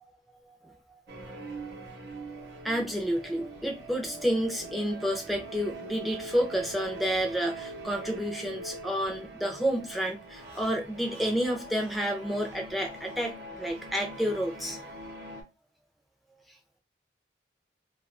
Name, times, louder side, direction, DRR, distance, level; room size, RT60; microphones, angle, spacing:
voice 1, 1.1-1.9 2.4-14.8, equal, ahead, 0.4 m, -30 dB
sound 1, 1.1-15.4, right 2 dB, 75° right, 0.7 m, -43 dB
2.3 x 2.3 x 2.4 m
head